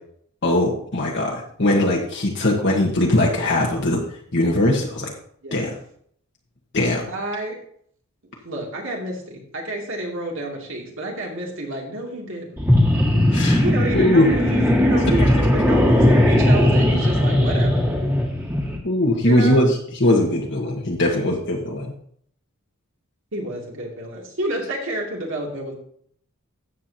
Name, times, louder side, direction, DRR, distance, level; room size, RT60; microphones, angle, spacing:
voice 1, 0.4-4.0 4.3-5.1 5.5-5.7 6.7-7.0 13.3-13.6 13.9-14.3 15.1-15.2 18.8-21.9, left 1 dB, 55° left, -2 dB, 1.4 m, -20 dB
voice 2, 7.1-7.6 8.2-12.5 13.6-17.8 19.2-19.7 23.3-25.7, right 1 dB, 60° right, 0 dB, 2.6 m, -29 dB
sound 1, 12.6-18.8, left 1 dB, 10° right, 1.8 m, -18 dB
13.5 x 8.5 x 2.8 m, 0.64 s
head